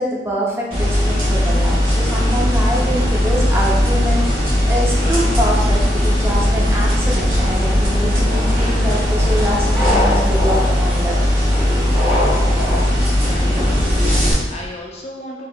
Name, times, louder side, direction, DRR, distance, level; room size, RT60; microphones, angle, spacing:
voice 1, 0.0-11.2, equal, 15° right, -4 dB, 0.5 m, -24 dB
sound 1, 0.7-14.3, equal, 30° right, 1.4 m, -17 dB
sound 2, 7.4-12.8, left 1 dB, ahead, 1.2 m, -25 dB
voice 2, 12.6-15.5, left 1 dB, 35° left, -1 dB, 0.4 m, -35 dB
3.9 x 2.9 x 2.2 m, 1.2 s
head